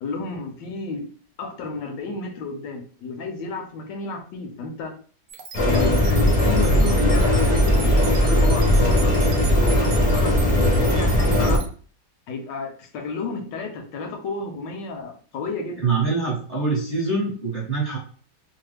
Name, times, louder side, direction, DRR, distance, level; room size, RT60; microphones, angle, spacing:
voice 1, 0.0-1.1 1.4-5.0 5.7-11.7 12.3-15.8, left 4 dB, 85° left, 4 dB, 1.3 m, -32 dB
sound 1, 5.3-11.7, right 6 dB, 70° right, 1.0 m, -37 dB
sound 2, 5.5-11.6, left 1 dB, 50° left, 0.4 m, -18 dB
voice 2, 15.8-18.0, right 4 dB, 35° right, -5 dB, 0.9 m, -24 dB
3.1 x 2.1 x 3.2 m, 0.43 s
omnidirectional pair, 1.9 m